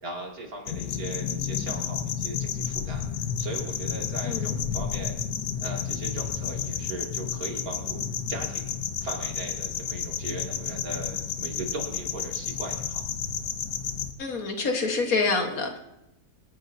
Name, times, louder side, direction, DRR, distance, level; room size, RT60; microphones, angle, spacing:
voice 1, 0.0-5.1 5.6-13.0, right 2 dB, 65° right, -1 dB, 2.9 m, -38 dB
sound 1, 0.7-14.1, left 8 dB, 90° left, 1.4 m, -31 dB
voice 2, 4.2-4.7 14.2-15.8, left 3 dB, 60° left, 4 dB, 1.9 m, -27 dB
26.0 x 10.5 x 2.7 m, 0.87 s
omnidirectional pair, 1.7 m